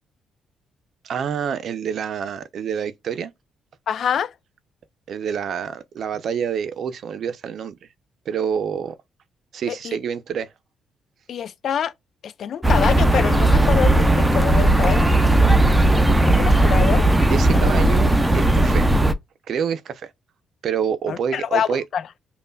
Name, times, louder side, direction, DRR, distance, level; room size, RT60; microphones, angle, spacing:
voice 1, 1.0-3.3 5.1-7.8 8.3-9.0 9.5-10.5 17.3-18.9 19.5-20.1 20.6-21.8, right 7 dB, 60° right, 0.6 m, -27 dB
voice 2, 3.9-4.3 9.7-10.0 11.3-11.9 12.2-15.1 15.8-17.0 17.6-17.8 21.1-22.0, left 8 dB, 60° left, 0.4 m, -26 dB
sound 1, 12.6-19.1, right 1 dB, 10° right, 0.6 m, -16 dB
5.4 x 2.4 x 2.3 m
cardioid pair, 90°, 0 cm